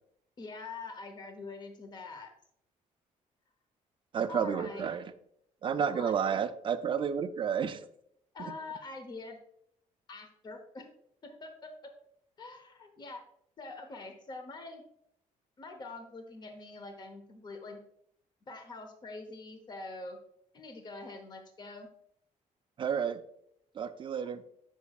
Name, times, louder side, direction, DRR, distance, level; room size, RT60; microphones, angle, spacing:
voice 1, 0.4-2.3 4.3-5.0 5.9-6.1 8.3-9.4 10.1-10.9 11.2-11.9 12.4-13.2 13.6-14.8 15.6-17.8 18.5-20.2 20.5-21.9, left 3 dB, 35° left, 6 dB, 0.9 m, -44 dB
voice 2, 4.1-5.0 5.6-7.8 8.4-8.5 22.8-23.2 23.8-24.4, right 7 dB, 40° right, 10 dB, 0.5 m, -31 dB
8.2 x 6.1 x 2.4 m, 0.72 s
cardioid pair, 125°, 13 cm